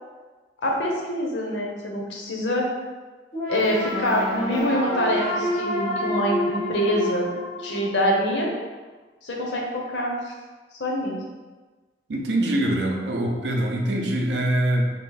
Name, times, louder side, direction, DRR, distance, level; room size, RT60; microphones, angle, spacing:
voice 1, 0.6-2.7 3.5-7.3 7.6-8.5 9.2-10.3 10.8-11.2, equal, 80° left, -1 dB, 0.7 m, -25 dB
sound 1, 3.3-8.3, equal, 30° left, 0.9 m, -28 dB
voice 2, 12.1-14.8, right 1 dB, 75° right, 1 dB, 0.5 m, -23 dB
3.0 x 2.6 x 3.9 m, 1.3 s
head